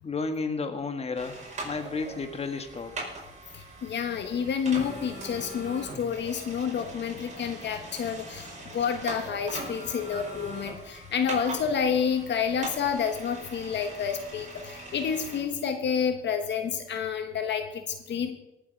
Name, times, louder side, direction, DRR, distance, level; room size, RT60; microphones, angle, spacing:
voice 1, 0.0-3.0, left 4 dB, 30° left, 7 dB, 1.6 m, -32 dB
sound 1, 1.1-15.4, right 2 dB, 35° right, 4.9 m, -41 dB
voice 2, 3.5-18.3, left 7 dB, 60° left, 7 dB, 1.3 m, -29 dB
18.0 x 7.8 x 5.3 m, 0.93 s
cardioid pair, 90°, 20 cm